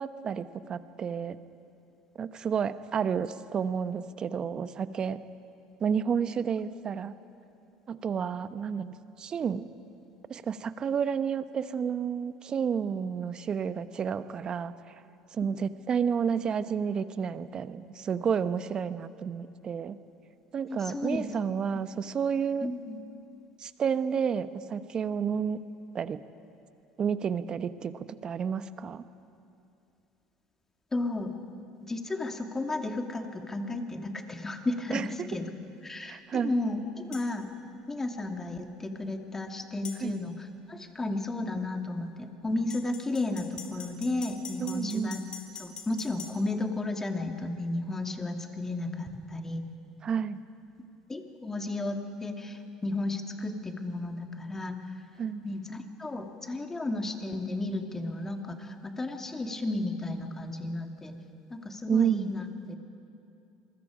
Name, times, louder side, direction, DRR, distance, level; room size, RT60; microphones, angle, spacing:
voice 1, 0.0-1.4 2.1-5.2 5.8-7.1 7.9-9.7 10.3-14.7 15.3-20.0 20.5-22.7 23.6-25.6 25.9-26.2 27.0-29.0 34.9-35.3 36.0-36.5 40.0-40.1 44.6-45.2 50.0-50.4 55.2-55.4 61.9-62.3, right 7 dB, 40° right, 13 dB, 1.0 m, -30 dB
voice 2, 20.7-21.3 22.6-23.0 30.9-31.3 31.9-35.0 35.3-35.5 35.8-37.5 37.9-45.2 45.6-49.6 51.1-54.9 55.4-61.2 61.5-62.8, left 2 dB, 20° left, 4 dB, 2.4 m, -33 dB
sound 1, 37.1-37.3 39.8-40.0 42.7-46.3, left 6 dB, 40° left, 4.1 m, -43 dB
27.5 x 22.0 x 5.1 m, 2.6 s
hypercardioid pair, 70°, 2 cm